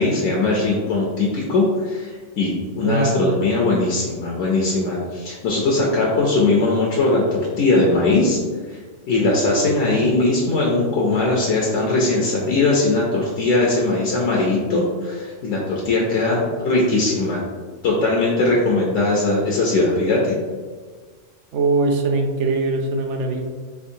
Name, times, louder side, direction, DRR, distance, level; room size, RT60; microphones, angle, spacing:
voice 1, 0.0-8.4 8.7-8.8 9.1-17.4 17.8-20.2, left 2 dB, 80° left, -3 dB, 0.9 m, -20 dB
voice 2, 2.8-3.3 21.5-23.4, right 3 dB, 75° right, 2 dB, 0.9 m, -21 dB
3.4 x 3.0 x 2.7 m, 1.5 s
omnidirectional pair, 1.3 m